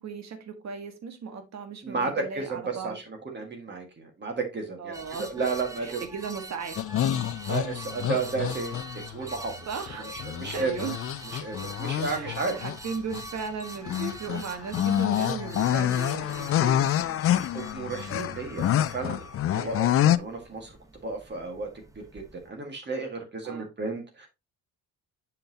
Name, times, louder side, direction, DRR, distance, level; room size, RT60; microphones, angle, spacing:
voice 1, 0.0-3.0 4.8-5.5 5.8-6.7 9.7-10.0 10.5-11.0 12.1-17.2 19.5-19.7 23.4-23.6, right 5 dB, 60° right, 1.5 m, -36 dB
voice 2, 1.8-6.0 7.5-9.5 10.4-10.7 11.3-12.5 17.5-19.3 19.5-20.7 21.0-21.7 22.1-22.2 22.5-24.3, right 4 dB, 35° right, 1.8 m, -32 dB
sound 1, 4.9-22.5, right 1 dB, 10° right, 0.9 m, -44 dB
sound 2, 6.8-9.2 9.9-12.8 13.1-13.2 13.9-20.2, left 11 dB, 50° left, 0.4 m, -27 dB
6.9 x 5.7 x 2.8 m
cardioid pair, 90°, 30 cm